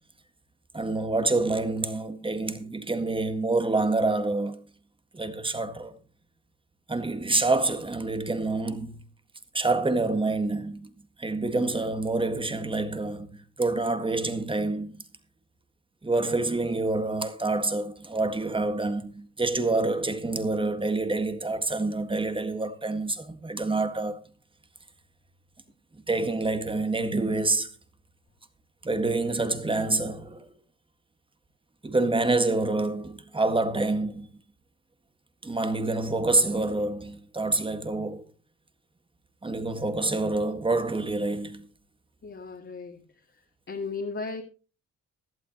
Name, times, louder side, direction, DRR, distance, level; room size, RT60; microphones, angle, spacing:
voice 1, 0.7-4.6 5.1-5.9 6.9-9.0 9.5-10.9 11.2-15.0 16.0-24.2 26.1-27.7 28.8-30.5 31.8-34.3 35.4-38.2 39.4-41.7, right 2 dB, 15° right, 1.8 m, -27 dB
voice 2, 42.2-43.0 43.7-44.4, left 4 dB, 40° left, 2.4 m, -35 dB
17.0 x 12.0 x 3.0 m
cardioid pair, 90°, 30 cm